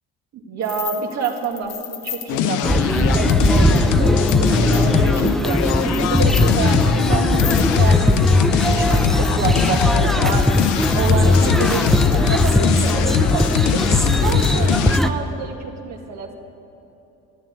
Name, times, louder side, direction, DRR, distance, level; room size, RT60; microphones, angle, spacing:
voice 1, 0.3-10.6 10.9-13.8 14.2-16.3, right 5 dB, 60° right, 2 dB, 2.1 m, -28 dB
sound 1, 0.6-8.2 8.8-9.6 10.3-12.5, left 10 dB, 60° left, 1.4 m, -36 dB
sound 2, 2.3-15.0, left 10 dB, 80° left, 0.7 m, -21 dB
sound 3, 2.6-15.1, left 1 dB, ahead, 0.6 m, -18 dB
13.0 x 10.5 x 9.5 m, 2.9 s
cardioid pair, 105°, 31 cm